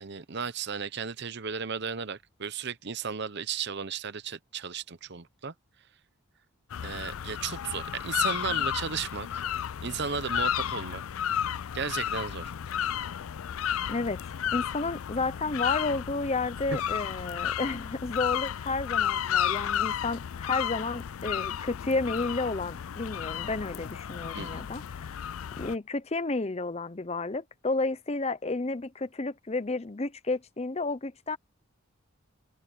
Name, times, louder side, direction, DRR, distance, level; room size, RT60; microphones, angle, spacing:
voice 1, 0.0-5.5 6.8-9.4 9.8-11.0 11.7-12.5 24.3-24.6, right 6 dB, 50° right, 0.8 m, -35 dB
sound 1, 6.7-25.7, left 9 dB, 70° left, 0.4 m, -32 dB
voice 2, 13.9-14.2 14.5-25.1 25.6-31.4, left 3 dB, 30° left, 0.7 m, -31 dB
head